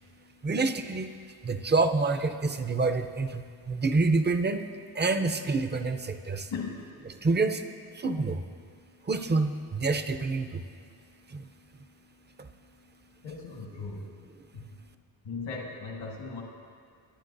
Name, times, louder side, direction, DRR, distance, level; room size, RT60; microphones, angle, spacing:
voice 1, 0.4-4.7 4.9-6.5 7.2-7.6 7.9-8.4 9.0-10.6 11.3-11.5 12.4-12.5, right 3 dB, 25° right, 8 dB, 0.6 m, -27 dB
voice 2, 6.5-6.9 13.2-14.1 14.5-14.8 15.2-16.4, left 4 dB, 75° left, -1 dB, 1.7 m, -38 dB
22.0 x 9.4 x 2.6 m, 2.1 s
cardioid pair, 80°, 46 cm